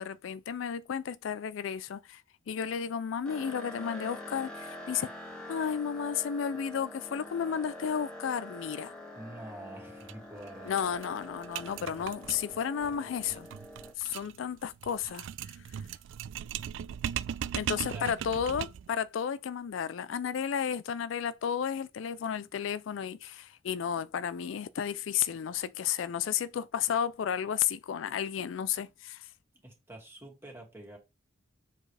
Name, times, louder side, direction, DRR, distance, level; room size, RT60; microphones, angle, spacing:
voice 1, 0.0-2.2 2.5-5.1 5.5-8.9 10.7-13.5 14.0-15.8 17.5-29.3, left 8 dB, 75° left, 0.4 m, -33 dB
sound 1, 3.2-13.9, left 1 dB, 5° left, 1.7 m, -45 dB
voice 2, 9.2-10.7 13.7-13.9 17.9-18.1 29.6-31.0, right 1 dB, 15° right, 2.3 m, -46 dB
sound 2, 10.0-10.1 10.4-10.5 10.8-18.9, right 9 dB, 70° right, 0.3 m, -38 dB
7.3 x 4.2 x 3.3 m
head